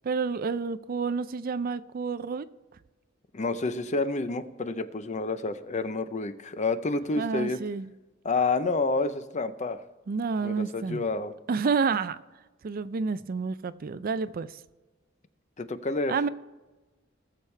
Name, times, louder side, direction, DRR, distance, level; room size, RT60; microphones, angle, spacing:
voice 1, 0.0-2.5 7.2-7.9 10.1-11.0 11.5-12.2 12.6-14.6 16.1-16.3, right 5 dB, 50° right, 14 dB, 0.4 m, -29 dB
voice 2, 3.3-7.6 8.2-9.8 10.4-11.3 15.6-16.1, left 3 dB, 35° left, 12 dB, 0.6 m, -29 dB
19.5 x 7.1 x 3.3 m, 1.2 s
head